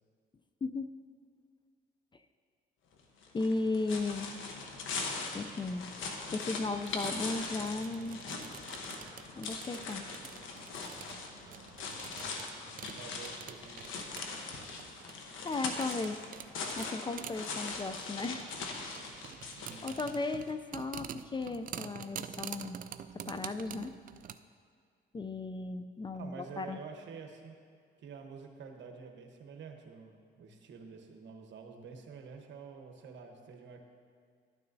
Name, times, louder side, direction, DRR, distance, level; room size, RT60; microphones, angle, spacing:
voice 1, 0.6-0.9 3.3-4.3 5.3-5.9 6.3-8.2 9.4-10.0 15.4-16.2 16.8-18.5 19.8-22.8 23.3-24.0 25.1-26.8, left 3 dB, 25° left, 9 dB, 0.4 m, -35 dB
sound 1, 3.2-20.4, left 4 dB, 80° left, 1.0 m, -41 dB
sound 2, 6.8-24.4, right 9 dB, 45° right, 0.4 m, -47 dB
voice 2, 12.9-14.3 19.5-20.1 26.1-27.5 28.0-33.8, right 5 dB, 65° right, 3 dB, 1.1 m, -48 dB
12.0 x 9.4 x 2.7 m, 2.1 s
cardioid pair, 90°, 20 cm